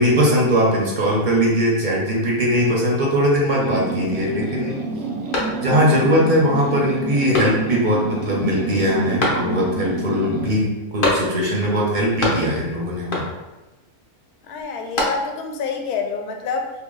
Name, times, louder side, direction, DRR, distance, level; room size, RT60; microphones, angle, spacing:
voice 1, 0.0-4.8 5.6-13.3, equal, 45° right, -4 dB, 0.7 m, -20 dB
sound 1, 3.6-10.7, right 3 dB, 80° right, 1.0 m, -28 dB
sound 2, 5.3-6.0 6.4-6.5 7.3-7.9 9.2-9.8 11.0-11.6 11.9-12.7 13.1-13.6 14.6-15.5, left 1 dB, 45° left, 0.8 m, -25 dB
voice 2, 14.4-16.7, left 5 dB, 85° left, 3 dB, 1.1 m, -27 dB
2.9 x 2.7 x 3.8 m, 1.1 s
omnidirectional pair, 1.5 m